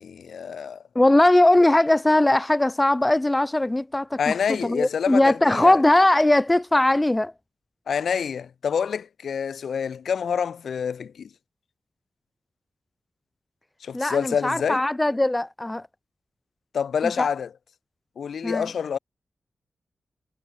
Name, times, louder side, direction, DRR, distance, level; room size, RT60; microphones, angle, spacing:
voice 1, 0.0-0.8 4.2-5.8 7.9-11.3 13.8-14.8 16.7-17.5 18.2-19.0, left 7 dB, 80° left, 0.7 m, -27 dB
voice 2, 1.0-7.3 13.9-15.9 17.0-17.3 18.4-18.7, left 1 dB, 15° left, 0.3 m, -20 dB
cardioid pair, 85°, 0 cm